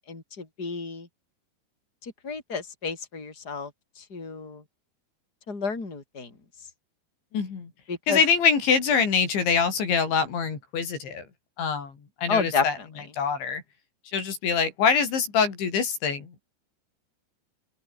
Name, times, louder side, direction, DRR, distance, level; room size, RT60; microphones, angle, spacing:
voice 1, 0.1-1.1 2.0-3.7 4.0-4.6 5.5-6.3 7.9-8.2 12.3-12.9, left 5 dB, 20° left, 5.8 m, -31 dB
voice 2, 7.3-7.7 8.1-11.2 11.6-11.9 12.2-12.7 13.2-13.6 14.1-16.4, left 6 dB, 70° left, 7.3 m, -24 dB
open air
omnidirectional pair, 5.4 m